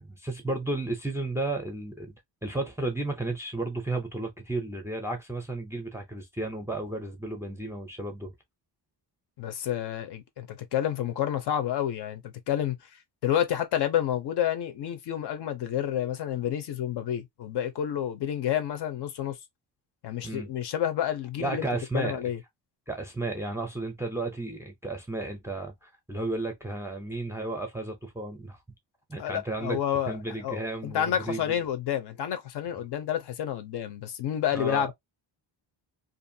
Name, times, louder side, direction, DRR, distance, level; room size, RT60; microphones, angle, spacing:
voice 1, 0.0-2.1 2.4-8.3 20.2-20.5 21.4-22.2 22.9-28.6 29.1-29.8 30.1-31.7 32.7-32.8 34.5-34.9, right 2 dB, 5° right, 0.5 m, -33 dB
voice 2, 9.4-12.8 13.2-19.4 20.0-21.6 21.9-22.4 29.2-30.2 30.4-34.9, left 10 dB, 65° left, 0.7 m, -29 dB
2.6 x 2.4 x 2.6 m
cardioid pair, 155°, 44 cm